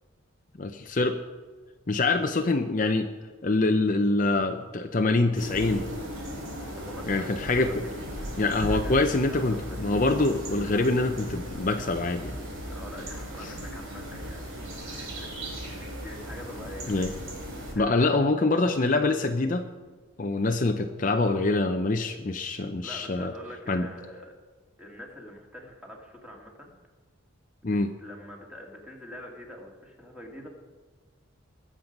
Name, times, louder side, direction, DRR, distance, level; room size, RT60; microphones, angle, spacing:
voice 1, 0.6-1.2 1.9-3.1 3.4-5.9 7.1-7.7 8.4-12.4 13.4-13.5 16.9-17.1 17.7-19.7 20.2-23.3 23.7-23.9 27.6-27.9, left 2 dB, 40° left, 6 dB, 0.6 m, -25 dB
sound 1, 5.3-17.7, equal, 70° right, 4.1 m, -37 dB
voice 2, 6.7-10.0 12.7-15.4 16.0-17.2 17.7-18.5 22.8-24.3 24.8-26.7 27.6-30.5, left 1 dB, 5° right, 0 dB, 2.2 m, -45 dB
21.5 x 7.6 x 5.3 m, 1.4 s
head